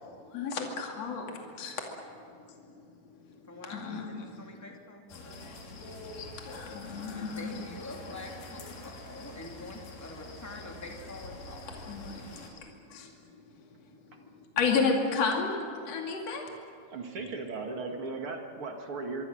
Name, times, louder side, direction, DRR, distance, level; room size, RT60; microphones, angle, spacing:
voice 1, 0.3-1.9 3.7-4.4 6.1-7.7 11.9-13.1 14.6-15.6 15.8-16.4, left 5 dB, 50° left, 1 dB, 3.4 m, -32 dB
voice 2, 3.5-5.5 7.2-11.6, left 2 dB, 5° left, 0 dB, 2.3 m, -45 dB
sound 1, 5.1-12.5, left 2 dB, 75° left, 4.4 m, -45 dB
voice 3, 16.9-19.3, right 3 dB, 45° right, 3 dB, 2.6 m, -37 dB
25.0 x 24.0 x 6.5 m, 2.3 s
omnidirectional pair, 3.9 m